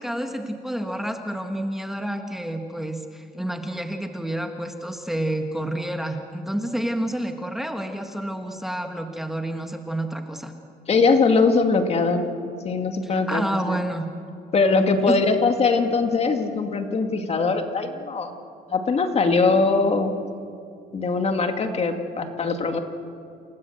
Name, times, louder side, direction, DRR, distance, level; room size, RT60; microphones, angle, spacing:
voice 1, 0.0-10.5 13.0-14.1 15.1-15.2, right 1 dB, ahead, 4 dB, 1.6 m, -29 dB
voice 2, 10.9-12.2 12.6-13.8 14.5-18.3 18.7-20.1 20.9-22.8, left 4 dB, 40° left, 6 dB, 2.3 m, -21 dB
28.5 x 18.0 x 8.0 m, 2.4 s
cardioid pair, 110°, 17 cm